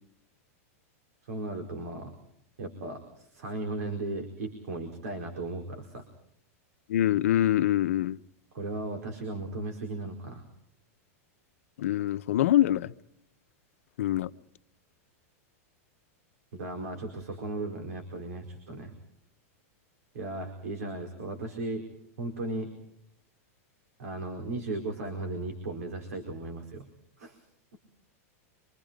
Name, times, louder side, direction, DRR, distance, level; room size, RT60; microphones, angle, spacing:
voice 1, 1.2-2.1 2.6-6.0 8.5-10.4 16.5-18.9 20.1-21.8 22.2-22.7 24.0-26.9 27.2-27.4, right 2 dB, 90° right, 4.7 m, -36 dB
voice 2, 6.9-8.2 11.8-12.9 14.0-14.3, left 12 dB, 65° left, 0.9 m, -24 dB
28.0 x 25.5 x 5.2 m
supercardioid pair, 175°, 8 cm